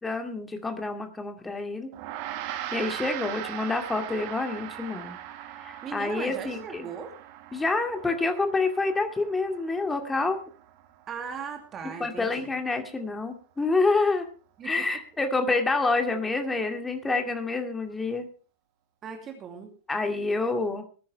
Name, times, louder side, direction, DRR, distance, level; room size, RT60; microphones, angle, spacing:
voice 1, 0.0-1.9 2.5-5.2 5.6-6.9 7.5-10.4 12.0-14.3 14.6-18.3 19.9-20.8, left 3 dB, 10° left, 4 dB, 2.3 m, -27 dB
Gong, 1.9-11.6, right 12 dB, 45° right, 1.6 m, -40 dB
voice 2, 5.8-7.1 11.1-12.5 14.6-14.8 19.0-19.7, right 6 dB, 25° right, 4 dB, 2.5 m, -38 dB
20.0 x 10.0 x 3.4 m, 0.38 s
figure-of-eight pair, 90°, 0 cm